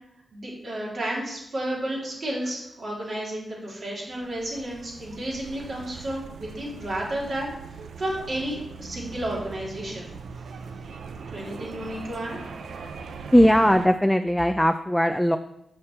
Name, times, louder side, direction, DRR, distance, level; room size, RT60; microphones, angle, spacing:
voice 1, 0.3-7.5 8.0-10.1 11.3-12.4, right 1 dB, 55° right, -4 dB, 2.7 m, -32 dB
sound 1, 4.1-13.9, right 5 dB, 85° right, 0.5 m, -41 dB
voice 2, 13.3-15.4, equal, 5° left, 8 dB, 0.3 m, -19 dB
6.6 x 5.5 x 4.3 m, 0.80 s
cardioid pair, 65°, 0 cm